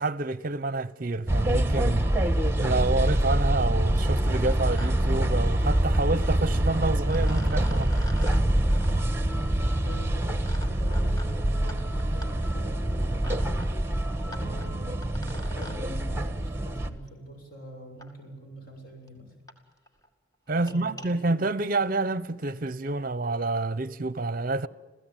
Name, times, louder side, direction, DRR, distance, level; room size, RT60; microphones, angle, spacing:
voice 1, 0.0-2.1 2.6-7.9 20.5-24.7, right 2 dB, 45° right, 0.7 m, -28 dB
sound 1, 1.3-16.9, right 1 dB, 15° right, 1.3 m, -25 dB
sound 2, 3.1-3.5 4.4-4.9 5.2-5.3 6.6-6.7 7.1-15.8 17.1-17.2 18.0-18.1 18.8-18.9 19.1-19.2 19.5-19.6 19.9-20.1 20.5-21.1, left 1 dB, 20° left, 2.4 m, -47 dB
voice 2, 9.8-13.2 14.3-19.3 20.6-21.5, equal, 50° left, 6.9 m, -45 dB
28.0 x 16.5 x 9.0 m
head